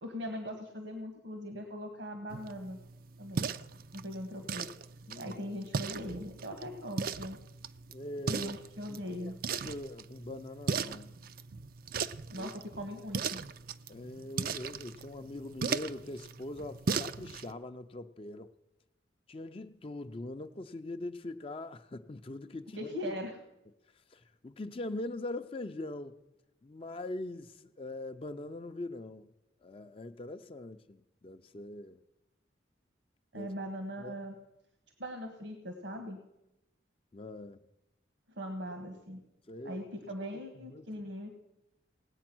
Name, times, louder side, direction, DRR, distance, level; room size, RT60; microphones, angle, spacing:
voice 1, 0.0-2.8 3.2-3.5 3.9-4.7 5.1-7.4 8.3-9.3 12.3-13.4 22.7-23.4 33.3-34.4 35.0-36.2 38.4-39.2 39.6-41.3, equal, 80° right, 5 dB, 1.5 m, -40 dB
sound 1, 2.3-17.5, right 5 dB, 50° right, 0.4 m, -38 dB
voice 2, 7.9-8.5 8.9-11.1 12.3-12.5 13.9-18.5 19.3-22.9 24.1-26.2 26.6-29.3 29.6-32.0 33.3-33.5 34.0-34.1 37.1-37.6 39.5-39.8 40.6-40.9, left 2 dB, 30° left, 8 dB, 0.5 m, -42 dB
18.0 x 8.5 x 6.1 m, 0.92 s
head